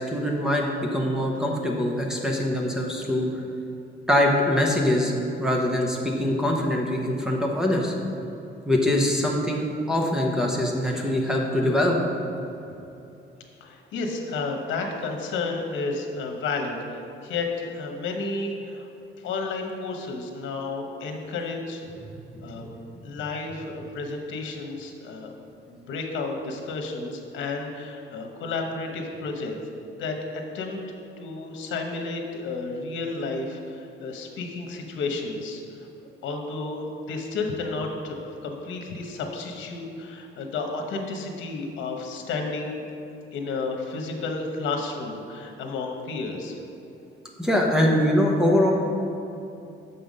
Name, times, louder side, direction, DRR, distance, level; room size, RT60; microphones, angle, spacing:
voice 1, 0.0-3.3 4.1-5.1 5.4-7.9 8.7-12.0 47.4-48.7, left 1 dB, 5° right, -1 dB, 0.7 m, -23 dB
voice 2, 13.6-18.8 19.2-21.9 22.4-22.7 23.0-25.3 25.7-29.6 30.0-35.6 36.2-42.8 43.3-46.6, left 3 dB, 75° left, 3 dB, 1.1 m, -32 dB
6.8 x 5.7 x 5.2 m, 2.8 s
cardioid pair, 170°, 20 cm